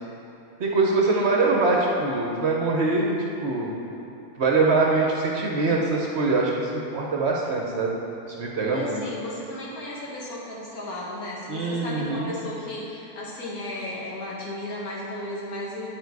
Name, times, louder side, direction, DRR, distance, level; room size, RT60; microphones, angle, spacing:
voice 1, 0.6-3.1 3.4-3.7 4.4-7.9 8.4-9.0 11.5-12.3, right 3 dB, 55° right, -1 dB, 0.8 m, -23 dB
voice 2, 8.7-15.9, left 1 dB, 75° left, -6 dB, 1.9 m, -34 dB
9.0 x 4.7 x 4.6 m, 2.8 s
omnidirectional pair, 1.6 m